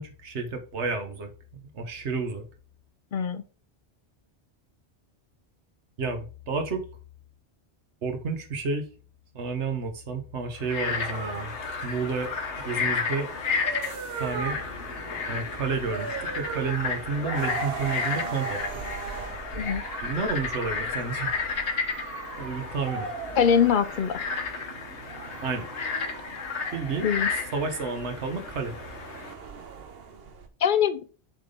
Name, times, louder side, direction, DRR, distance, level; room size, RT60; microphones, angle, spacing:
voice 1, 0.0-2.4 6.0-6.8 8.0-8.9 9.3-11.5 11.8-13.3 14.2-14.6 15.3-18.6 20.0-21.3 22.4-23.1 25.4-25.6 26.7-27.1 27.5-28.7, right 4 dB, 80° right, 5 dB, 1.4 m, -31 dB
voice 2, 3.1-3.4 19.6-19.8 23.4-24.2 27.0-27.3 30.6-31.0, left 7 dB, 60° left, 12 dB, 0.6 m, -23 dB
Frog, 10.6-29.3, left 5 dB, 85° left, 1.3 m, -33 dB
sound 1, 11.1-30.5, right 5 dB, 65° right, 1.0 m, -39 dB
7.3 x 3.6 x 3.7 m, 0.36 s
omnidirectional pair, 1.2 m